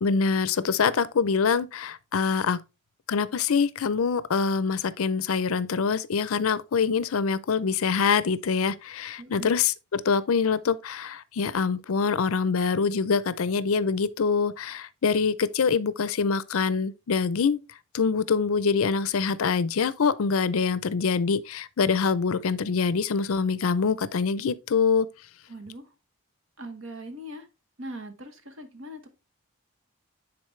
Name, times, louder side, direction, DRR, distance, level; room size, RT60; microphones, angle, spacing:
voice 1, 0.0-2.6 3.1-17.6 17.9-25.1, left 5 dB, 75° left, 0.5 m, -25 dB
voice 2, 9.2-9.5 25.5-25.9 26.6-27.5 27.8-29.1, right 1 dB, 60° right, 1.2 m, -40 dB
9.6 x 4.1 x 3.2 m
head